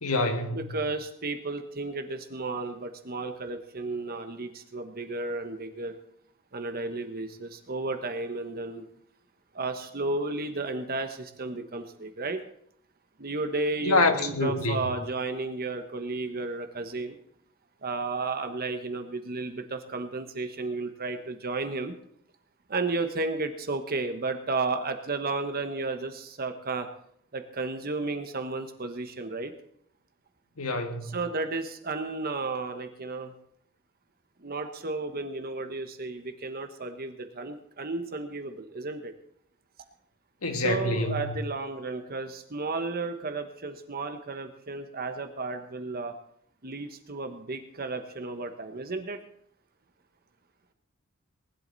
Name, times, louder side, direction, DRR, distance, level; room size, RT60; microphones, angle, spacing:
voice 1, 0.0-0.6 13.8-14.8 30.6-31.2 40.4-41.3, left 2 dB, 85° left, 1.8 m, -26 dB
voice 2, 0.5-6.0 6.5-8.8 9.5-12.4 13.2-17.1 17.8-21.9 22.7-26.9 27.3-29.5 31.0-33.3 34.4-39.1 40.5-46.1 46.6-49.2, right 3 dB, 45° right, 1.2 m, -33 dB
19.5 x 11.5 x 4.1 m
head